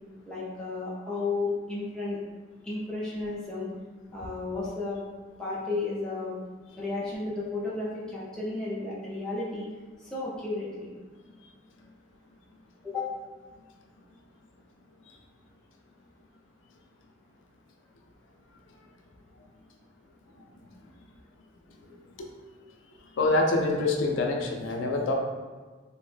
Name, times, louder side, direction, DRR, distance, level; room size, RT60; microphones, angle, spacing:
voice 1, 0.2-2.2 2.6-3.7 4.1-5.0 5.4-6.4 6.8-9.7 10.0-10.9 12.8-13.1, left 3 dB, 5° left, -8 dB, 0.6 m, -33 dB
voice 2, 23.2-25.1, left 2 dB, 80° left, 2 dB, 0.4 m, -25 dB
3.0 x 2.1 x 3.2 m, 1.4 s
head